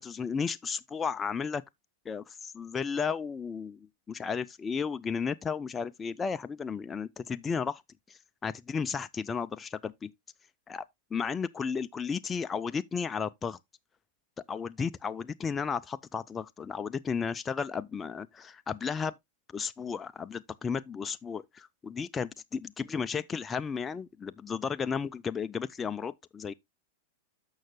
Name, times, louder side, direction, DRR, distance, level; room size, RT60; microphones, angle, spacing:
voice 1, 0.0-1.6 2.1-7.8 8.1-10.1 10.7-10.8 11.1-13.6 14.5-19.1 19.5-26.5, left 6 dB, 15° left, 0.4 m, -34 dB
13.5 x 5.6 x 2.2 m
figure-of-eight pair, 95°, 0 cm